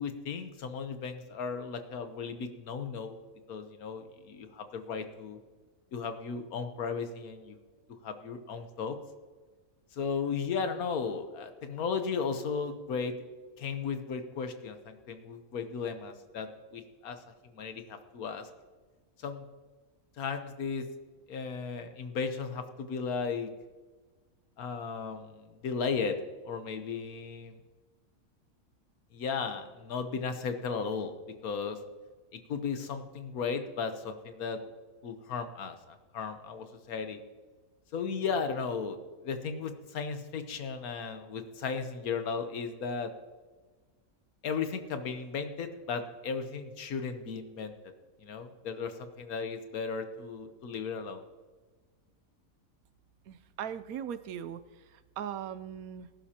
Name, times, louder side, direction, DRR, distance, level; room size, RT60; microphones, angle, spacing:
voice 1, 0.0-3.1 3.5-5.4 5.9-7.6 8.0-9.0 9.9-13.1 13.6-17.2 17.5-18.5 19.2-19.4 20.2-20.8 21.3-23.5 24.6-26.2 26.4-27.6 29.1-31.1 31.4-31.8 32.3-34.6 35.0-37.2 37.9-39.0 39.2-43.1 44.4-47.7 48.2-51.2, left 5 dB, 90° left, 8 dB, 1.5 m, -35 dB
voice 2, 53.3-54.6 55.2-56.1, right 9 dB, 85° right, 12 dB, 1.1 m, -38 dB
19.0 x 11.0 x 2.9 m, 1.3 s
omnidirectional pair, 1.5 m